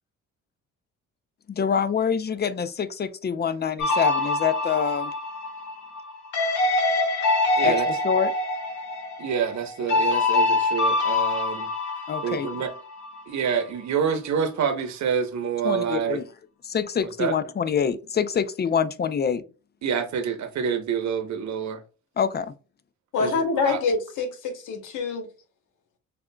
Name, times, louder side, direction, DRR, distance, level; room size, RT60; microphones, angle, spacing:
voice 1, 1.5-5.1 7.6-8.3 12.1-12.5 15.6-16.2 16.6-19.4 22.2-22.5, left 7 dB, 35° left, 0.5 m, -25 dB
sound 1, 3.8-13.2, left 2 dB, 70° left, 1.9 m, -25 dB
voice 2, 7.6-7.9 9.2-11.7 12.2-12.7 13.3-16.2 17.2-17.4 19.8-21.8 23.2-23.8, right 7 dB, 65° right, 1.0 m, -27 dB
voice 3, 23.1-25.3, left 4 dB, 90° left, 1.2 m, -26 dB
6.7 x 2.5 x 2.3 m
cardioid pair, 90°, 30 cm